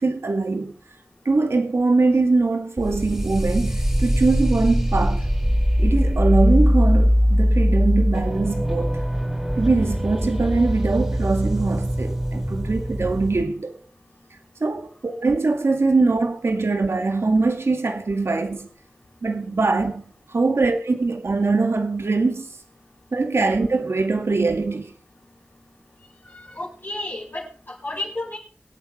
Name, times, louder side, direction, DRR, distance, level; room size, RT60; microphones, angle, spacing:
voice 1, 0.0-0.7 1.3-5.3 5.8-9.0 9.6-13.8 14.6-18.7 19.2-20.0 20.3-22.5 23.1-24.9, right 3 dB, 80° right, 2.1 m, -22 dB
sound 1, 2.8-13.4, equal, 10° right, 4.0 m, -21 dB
voice 2, 26.2-28.4, left 2 dB, 50° left, 5.3 m, -32 dB
23.5 x 8.6 x 4.4 m
wide cardioid pair, 60°, 4 cm